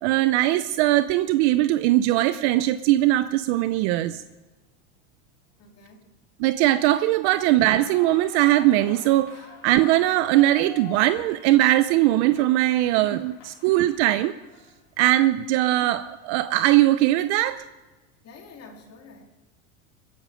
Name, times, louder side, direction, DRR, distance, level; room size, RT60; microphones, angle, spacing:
voice 1, 0.0-4.2 6.4-14.3 15.0-17.6, right 15 dB, 65° right, 13 dB, 0.7 m, -20 dB
voice 2, 5.6-6.2 7.4-7.5 18.2-19.2, left 4 dB, 40° left, 2 dB, 3.1 m, -48 dB
Clapping / Cheering / Applause, 7.5-14.9, left 9 dB, 60° left, 2.2 m, -46 dB
22.0 x 10.5 x 5.0 m, 1.2 s
supercardioid pair, 120°, 36 cm